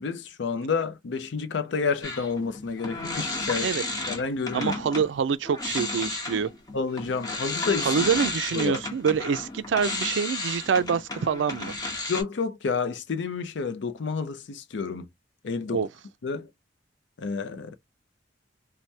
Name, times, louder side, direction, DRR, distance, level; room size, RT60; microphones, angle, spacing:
voice 1, 0.0-3.7 4.1-4.8 6.7-7.9 8.5-8.8 12.1-15.1 15.4-15.9 16.2-16.5 17.2-17.8, left 5 dB, 70° left, 0.5 m, -29 dB
sound 1, 2.0-5.1 5.5-12.2, left 2 dB, 20° left, 0.9 m, -32 dB
voice 2, 4.5-6.5 7.8-11.7 15.7-15.9, right 6 dB, 75° right, 0.4 m, -26 dB
3.2 x 2.1 x 2.7 m
head